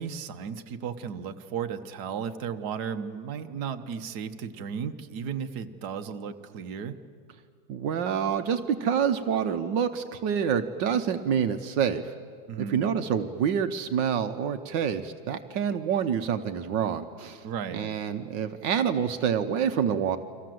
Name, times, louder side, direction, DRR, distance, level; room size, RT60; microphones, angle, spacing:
voice 1, 0.0-7.0 12.5-12.8 17.4-17.9, right 7 dB, 60° right, 7 dB, 1.6 m, -35 dB
voice 2, 7.7-12.1 12.7-17.5 17.7-20.2, right 7 dB, 75° right, 8 dB, 1.6 m, -27 dB
29.5 x 24.5 x 7.7 m, 2.1 s
omnidirectional pair, 2.0 m